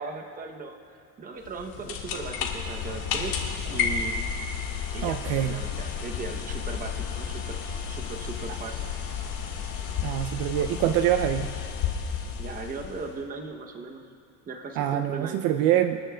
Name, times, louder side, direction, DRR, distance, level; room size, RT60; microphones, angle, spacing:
voice 1, 0.0-3.4 3.7-4.2 4.9-8.9 12.4-14.0 14.5-15.5, right 3 dB, 20° right, 4 dB, 0.8 m, -38 dB
sound 1, 1.4-13.2, left 7 dB, 55° left, 1.7 m, -32 dB
sound 2, 3.6-11.1, right 3 dB, 85° right, 2.9 m, -49 dB
voice 2, 5.0-5.6 10.0-11.5 14.8-16.0, right 11 dB, 55° right, 8 dB, 0.5 m, -25 dB
28.0 x 10.0 x 2.3 m, 2.5 s
cardioid pair, 150°, 43 cm